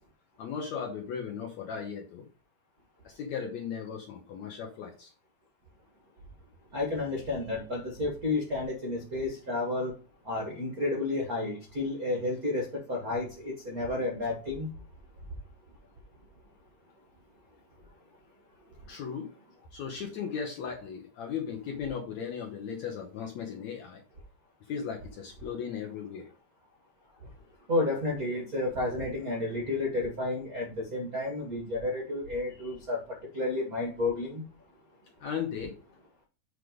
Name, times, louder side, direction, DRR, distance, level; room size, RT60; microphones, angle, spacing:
voice 1, 0.4-2.3 3.0-5.1 18.9-19.3 19.7-24.0 24.7-26.3 35.2-35.7, left 7 dB, 70° left, 1.8 m, -37 dB
voice 2, 6.7-9.9 10.2-14.7 27.7-34.4, left 2 dB, 80° right, 0.8 m, -31 dB
7.9 x 3.3 x 5.1 m
omnidirectional pair, 4.4 m